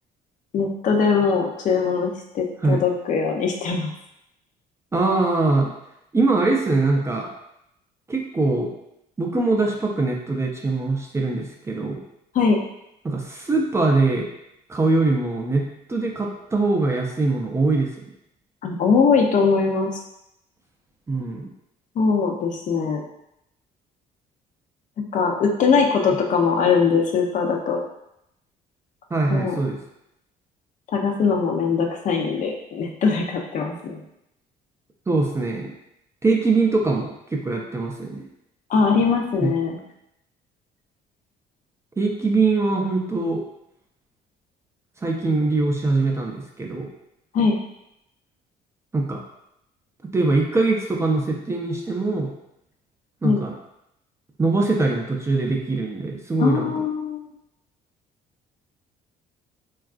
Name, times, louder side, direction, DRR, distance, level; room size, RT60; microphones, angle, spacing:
voice 1, 0.5-3.9 12.3-12.6 18.6-20.0 22.0-23.0 25.0-27.8 29.3-29.6 30.9-34.0 38.7-39.8 47.3-47.6 53.2-53.4 56.4-57.3, left 5 dB, 50° left, 1 dB, 0.5 m, -21 dB
voice 2, 4.9-5.7 6.1-7.3 8.1-8.7 9.2-12.0 13.0-14.3 14.7-18.1 21.1-21.5 26.1-26.2 29.1-29.8 35.1-35.7 36.2-38.2 39.4-39.5 42.0-43.4 45.0-46.9 48.9-49.2 50.0-52.3 53.2-53.5 54.4-56.7, right 3 dB, 15° right, 0 dB, 0.4 m, -22 dB
3.4 x 2.3 x 2.4 m, 0.81 s
cardioid pair, 110°, 17 cm